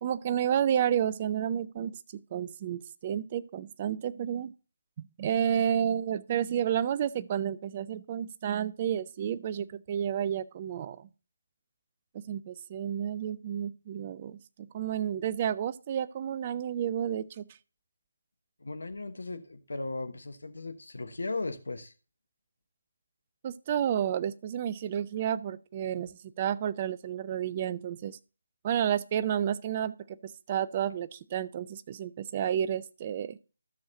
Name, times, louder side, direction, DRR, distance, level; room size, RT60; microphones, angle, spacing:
voice 1, 0.0-4.5 5.2-11.1 12.1-17.4 23.4-28.2 28.6-33.4, right 9 dB, 30° right, 0.4 m, -31 dB
voice 2, 18.6-21.9, left 3 dB, 65° left, 1.1 m, -37 dB
13.5 x 6.3 x 2.8 m
figure-of-eight pair, 150°, 0 cm